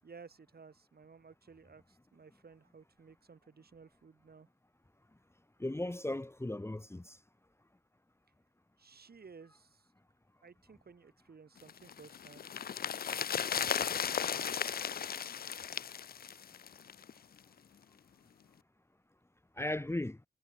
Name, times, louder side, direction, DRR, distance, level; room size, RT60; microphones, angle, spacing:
voice 1, 0.0-4.5 8.8-9.9 10.4-12.5 12.8-14.6, right 5 dB, 60° right, 7.6 m, -56 dB
voice 2, 5.6-7.2 19.6-20.2, left 1 dB, 15° left, 1.2 m, -36 dB
sound 1, 11.7-17.1 17.4-17.5, left 8 dB, 60° left, 0.5 m, -36 dB
wide cardioid pair, 90°, 18 cm